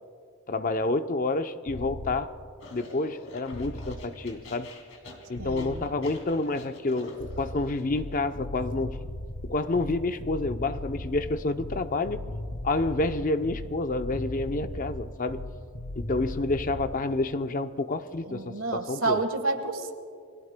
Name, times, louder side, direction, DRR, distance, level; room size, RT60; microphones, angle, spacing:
voice 1, 0.5-2.3 2.7-4.7 5.3-9.0 9.4-12.2 12.6-15.4 16.0-19.2, left 2 dB, 35° left, 9 dB, 0.6 m, -29 dB
sound 1, 1.7-2.1 3.5-4.1 5.4-5.8 7.2-16.9, left 1 dB, 85° left, 1.7 m, -37 dB
sound 2, 2.6-8.0, left 1 dB, 65° left, 2.6 m, -47 dB
voice 2, 5.4-5.9 18.0-19.9, right 3 dB, 70° right, 7 dB, 1.4 m, -30 dB
29.0 x 22.0 x 2.2 m, 2.3 s
head